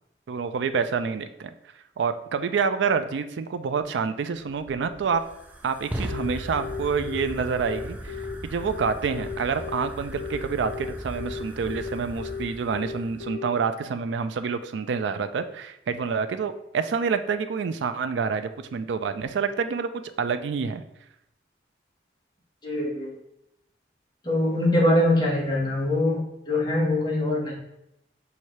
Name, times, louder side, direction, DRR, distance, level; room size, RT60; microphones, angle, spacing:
voice 1, 0.3-1.5 2.0-5.2 5.6-8.2 8.4-19.9 20.2-20.8, right 5 dB, 85° right, 10 dB, 0.4 m, -27 dB
Fire, 4.4-13.3, right 1 dB, 10° right, 0.3 m, -38 dB
Telephone, 6.1-13.5, left 7 dB, 80° left, 0.4 m, -35 dB
voice 2, 22.6-23.1 24.2-27.5, left 1 dB, 25° left, -5 dB, 1.2 m, -23 dB
5.8 x 2.7 x 3.1 m, 0.82 s
head